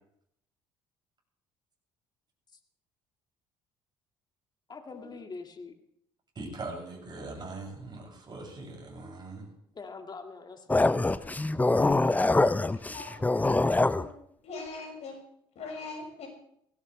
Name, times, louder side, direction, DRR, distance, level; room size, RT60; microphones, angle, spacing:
voice 1, 4.7-5.8 9.7-11.4, left 4 dB, 30° left, 5 dB, 2.0 m, -44 dB
voice 2, 6.4-9.5, right 2 dB, 35° right, 0 dB, 6.9 m, -41 dB
sound 1, 10.7-14.0, left 2 dB, 10° left, 0.6 m, -24 dB
voice 3, 13.6-14.1 14.4-15.1 15.6-16.3, left 3 dB, 55° left, 2 dB, 6.0 m, -41 dB
19.0 x 16.5 x 3.3 m, 0.72 s
hypercardioid pair, 55°, 13 cm